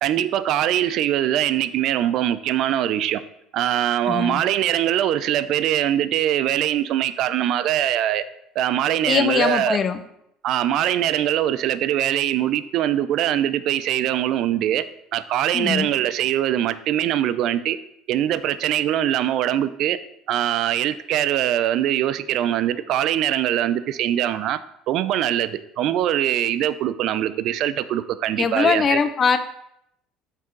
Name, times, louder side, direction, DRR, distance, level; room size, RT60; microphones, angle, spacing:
voice 1, 0.0-3.2 3.5-8.2 8.6-9.8 10.4-14.8 15.1-17.8 18.1-20.0 20.3-24.6 24.9-29.0, right 11 dB, 60° right, 15 dB, 0.4 m, -22 dB
voice 2, 4.1-4.4 9.1-10.0 15.5-15.9 28.4-29.4, left 6 dB, 40° left, 10 dB, 0.6 m, -21 dB
5.5 x 5.4 x 3.9 m, 0.78 s
hypercardioid pair, 70°, 0 cm